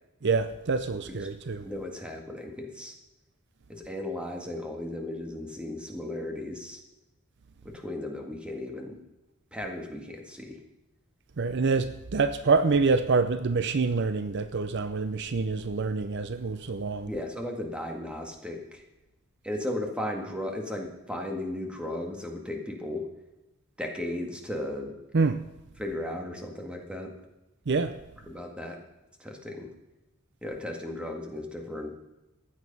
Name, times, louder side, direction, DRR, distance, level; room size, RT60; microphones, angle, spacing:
voice 1, 0.2-1.6 11.4-17.1 25.1-25.4 27.7-27.9, right 4 dB, 55° right, 12 dB, 0.6 m, -26 dB
voice 2, 1.6-2.9 3.7-6.8 7.6-9.0 9.5-10.6 17.1-18.8 19.4-23.1 23.8-24.9 25.8-27.1 28.3-28.8 29.2-29.7 30.4-32.0, left 1 dB, 5° right, 2 dB, 1.9 m, -35 dB
15.5 x 9.8 x 5.4 m, 0.97 s
head